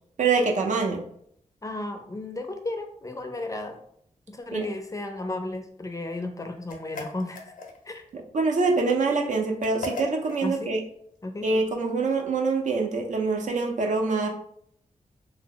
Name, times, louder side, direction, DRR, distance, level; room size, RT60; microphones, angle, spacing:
voice 1, 0.2-1.0 4.5-4.7 8.1-10.8 11.4-14.3, right 4 dB, 70° right, 2 dB, 0.6 m, -25 dB
voice 2, 1.6-3.8 4.3-7.5 7.9-8.0 10.4-10.7 11.2-11.5, left 2 dB, 25° left, 5 dB, 0.4 m, -34 dB
sound 1, 6.7-8.0 9.6-10.5, left 2 dB, 85° left, 0.5 m, -37 dB
2.8 x 2.0 x 3.7 m, 0.67 s
wide cardioid pair, 100°, 13 cm